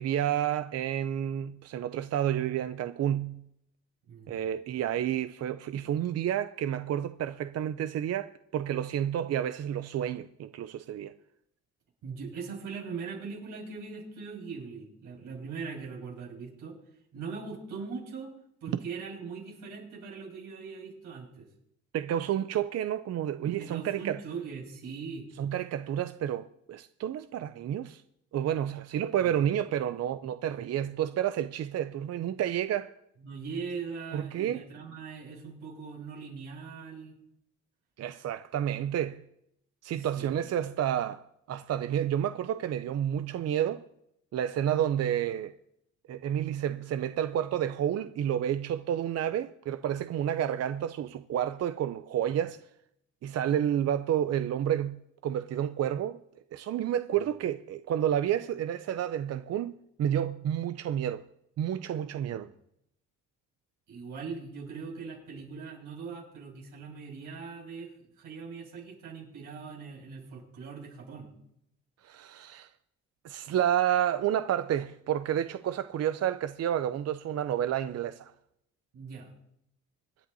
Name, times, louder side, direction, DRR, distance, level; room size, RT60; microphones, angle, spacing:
voice 1, 0.0-3.4 4.3-11.1 21.9-24.2 25.4-28.0 28.3-32.9 34.1-34.6 38.0-39.2 39.8-43.8 44.3-45.6 46.1-52.6 53.2-56.2 56.5-61.2 61.6-62.5 72.0-72.7 73.2-78.3, right 10 dB, 55° right, 0.5 m, -30 dB
voice 2, 4.1-4.5 12.0-16.7 17.1-18.3 18.6-21.5 23.5-25.3 29.2-29.4 33.2-37.2 39.9-40.3 57.2-57.3 62.4-62.5 63.9-67.9 68.2-71.3 78.9-79.3, right 5 dB, 85° right, 6.5 m, -41 dB
26.0 x 10.5 x 2.7 m
cardioid pair, 90°, 30 cm